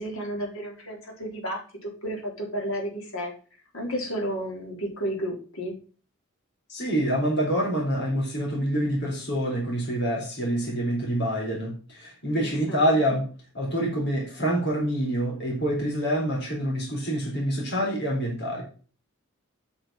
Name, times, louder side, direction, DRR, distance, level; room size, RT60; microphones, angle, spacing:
voice 1, 0.0-3.3 3.7-5.8 12.4-13.0, equal, 90° left, 0 dB, 3.9 m, -32 dB
voice 2, 6.7-13.2 13.5-18.6, equal, 55° left, -2 dB, 4.2 m, -26 dB
8.0 x 6.4 x 5.7 m, 0.38 s
head